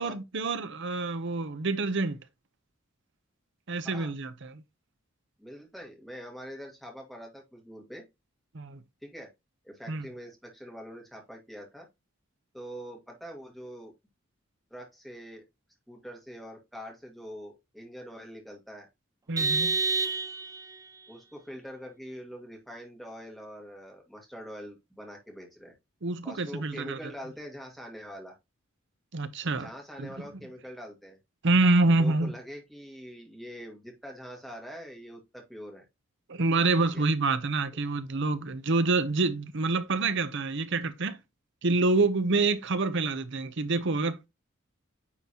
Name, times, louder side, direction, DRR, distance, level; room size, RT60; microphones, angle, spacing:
voice 1, 0.0-2.2 3.7-4.6 8.5-8.8 9.9-10.1 19.3-19.8 26.0-27.0 29.1-29.7 30.0-30.1 31.4-32.3 36.3-41.2 41.6-44.3, right 3 dB, 60° right, 0.8 m, -27 dB
voice 2, 5.4-8.0 9.0-9.3 9.6-11.9 12.5-13.9 14.7-15.5 15.9-18.9 21.1-25.7 26.2-28.3 29.6-31.2 31.9-35.9 36.8-37.0, equal, ahead, 1.9 m, -44 dB
Vehicle horn car horn honking, 19.4-20.8, right 4 dB, 15° right, 0.4 m, -28 dB
9.6 x 3.9 x 3.0 m
head